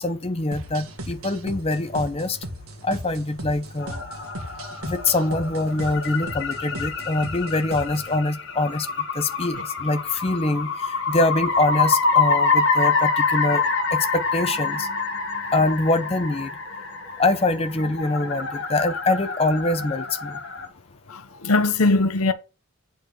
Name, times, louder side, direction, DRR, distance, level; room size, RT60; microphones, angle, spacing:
voice 1, 0.0-2.4 2.8-4.0 4.8-13.6 13.9-14.9 15.5-16.5 17.2-20.4, left 2 dB, 25° left, 0.8 m, -24 dB
sound 1, 0.5-8.2, right 1 dB, 80° right, 1.9 m, -37 dB
sound 2, 3.8-20.7, left 4 dB, 55° left, 1.8 m, -26 dB
voice 2, 21.1-22.3, left 3 dB, 90° left, 1.0 m, -20 dB
8.8 x 4.7 x 6.6 m
head